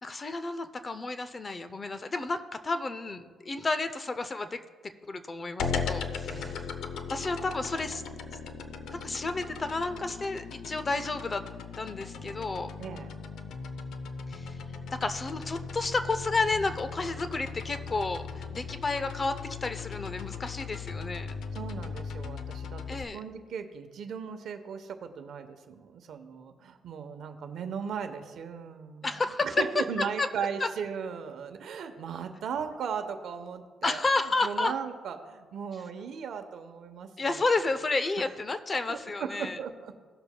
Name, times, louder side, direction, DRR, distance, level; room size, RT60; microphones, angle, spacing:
voice 1, 0.0-4.6 5.0-6.7 7.1-8.0 8.9-11.4 11.8-12.7 14.3-14.6 14.9-21.3 22.9-23.2 29.0-29.5 30.2-30.3 30.6-30.7 33.8-34.7 37.2-39.6, left 3 dB, 30° left, 10 dB, 0.6 m, -31 dB
sound 1, 5.6-23.0, left 5 dB, 75° left, 0.6 m, -38 dB
voice 2, 6.3-6.7 12.8-13.1 21.5-34.0 34.4-37.6 38.2-38.3 38.9-39.9, right 6 dB, 70° right, 8 dB, 0.9 m, -37 dB
18.0 x 6.9 x 2.3 m, 1.5 s
cardioid pair, 90°, 0 cm